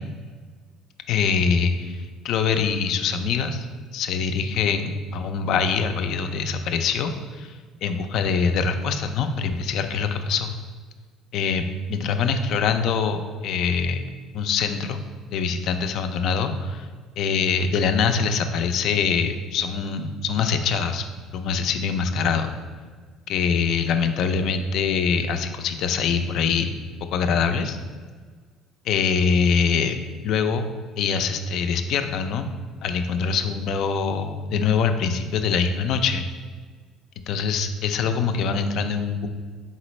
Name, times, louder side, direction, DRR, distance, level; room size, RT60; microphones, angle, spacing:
voice 1, 1.1-3.7 3.9-7.5 7.8-10.5 11.3-11.6 11.9-14.1 14.3-15.0 15.3-16.9 17.2-21.0 21.3-22.5 23.3-26.8 27.1-27.8 28.9-30.0 30.2-30.6 31.0-32.5 32.8-36.3 37.3-39.3, left 6 dB, 65° left, 8 dB, 0.3 m, -24 dB
4.1 x 3.7 x 3.1 m, 1.6 s
supercardioid pair, 80°, 0 cm